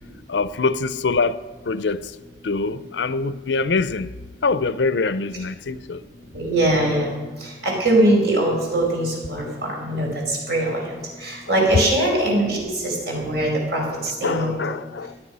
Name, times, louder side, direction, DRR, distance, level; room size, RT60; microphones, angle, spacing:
voice 1, 0.3-1.4 1.7-2.1 2.4-4.1 4.4-6.0 14.2-15.1, left 4 dB, 80° left, 0.6 m, -24 dB
voice 2, 6.3-14.8, right 1 dB, 65° right, 5.2 m, -22 dB
18.0 x 11.5 x 5.5 m
head